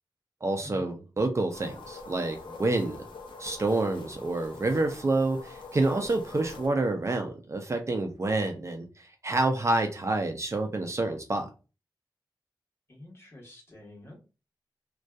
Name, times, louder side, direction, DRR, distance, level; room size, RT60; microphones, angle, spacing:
voice 1, 0.4-3.0 3.4-11.5, right 2 dB, 35° right, 0.4 m, -28 dB
sound 1, 1.5-6.7, left 3 dB, 85° left, 0.5 m, -44 dB
voice 2, 12.9-14.2, left 1 dB, 30° left, 1.2 m, -47 dB
2.6 x 2.2 x 2.2 m
wide cardioid pair, 105°, 8 cm